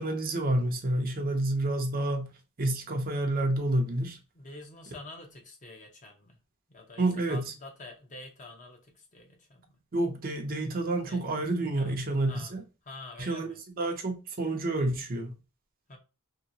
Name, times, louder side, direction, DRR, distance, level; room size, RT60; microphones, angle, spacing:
voice 1, 0.0-2.3 2.6-4.2 7.0-7.5 9.9-12.6 13.2-15.4, right 2 dB, 40° right, 0.6 m, -29 dB
voice 2, 4.3-6.4 6.7-7.0 7.3-9.8 11.1-11.5 11.7-11.9 12.3-12.5 12.9-13.6 15.9-16.0, left 2 dB, 35° left, 0.8 m, -47 dB
2.9 x 2.9 x 2.8 m
head